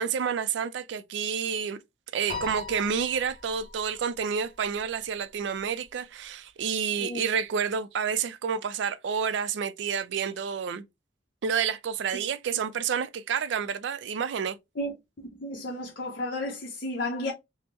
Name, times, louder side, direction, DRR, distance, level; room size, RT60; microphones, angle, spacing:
voice 1, 0.0-1.8 2.1-10.8 11.4-14.6, right 7 dB, 70° right, 0.3 m, -29 dB
Piano, 2.3-4.8, left 5 dB, 35° left, 1.6 m, -41 dB
voice 2, 15.2-17.3, left 1 dB, 55° left, 0.6 m, -32 dB
3.4 x 2.0 x 2.8 m
head